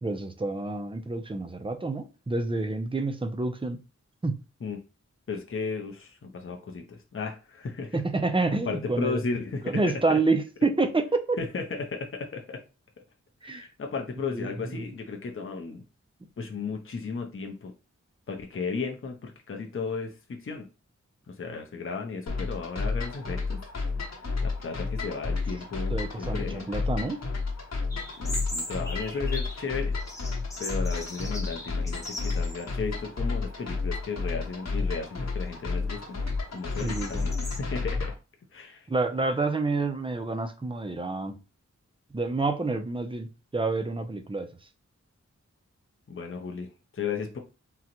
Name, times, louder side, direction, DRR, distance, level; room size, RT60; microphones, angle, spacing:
voice 1, 0.0-3.8 4.2-4.4 7.9-9.2 9.7-11.4 13.4-13.7 14.3-14.8 25.9-27.2 36.8-37.2 38.9-41.4 42.1-43.3 43.5-44.5, right 3 dB, 20° right, 0.5 m, -28 dB
voice 2, 5.3-8.0 8.6-9.8 11.4-12.6 13.4-15.8 16.4-17.7 18.3-20.7 21.3-23.6 24.4-26.7 28.2-29.9 30.6-36.2 36.5-38.1 38.5-38.9 46.1-47.4, left 4 dB, 45° left, 0.6 m, -35 dB
sound 1, 22.3-38.1, left 4 dB, 60° left, 1.0 m, -31 dB
sound 2, 27.9-29.7 30.0-32.7 33.1-33.2 33.9-34.3 34.8-37.6, left 1 dB, 10° left, 0.8 m, -40 dB
3.8 x 2.1 x 2.9 m
wide cardioid pair, 80°, 29 cm